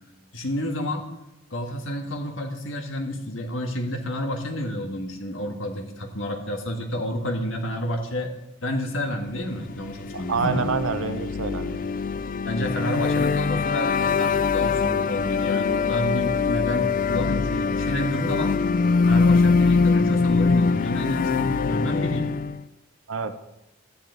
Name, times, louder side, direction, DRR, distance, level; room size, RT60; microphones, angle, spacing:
voice 1, 0.3-1.1 1.5-8.3 8.6-10.8 12.4-18.5 19.0-22.3, equal, 70° left, 3 dB, 1.7 m, -30 dB
sound 1, 9.6-22.6, left 4 dB, 40° left, 0.3 m, -23 dB
voice 2, 10.1-11.8 23.1-23.4, right 5 dB, 80° right, 10 dB, 0.8 m, -27 dB
13.0 x 10.5 x 4.0 m, 0.91 s
head